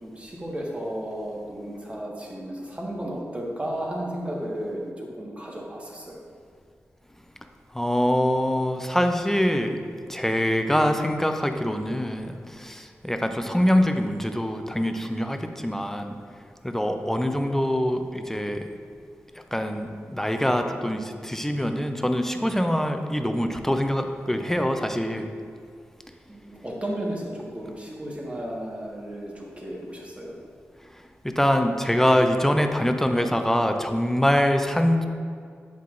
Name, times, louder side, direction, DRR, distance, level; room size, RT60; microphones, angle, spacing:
voice 1, 0.0-6.2 26.3-30.4, right 1 dB, 25° right, -3 dB, 1.5 m, -34 dB
voice 2, 7.7-9.8 10.1-16.2 16.6-18.7 19.5-25.3 31.2-35.1, equal, 10° left, 6 dB, 0.5 m, -24 dB
7.6 x 5.5 x 2.5 m, 2.2 s
cardioid pair, 45°, 5 cm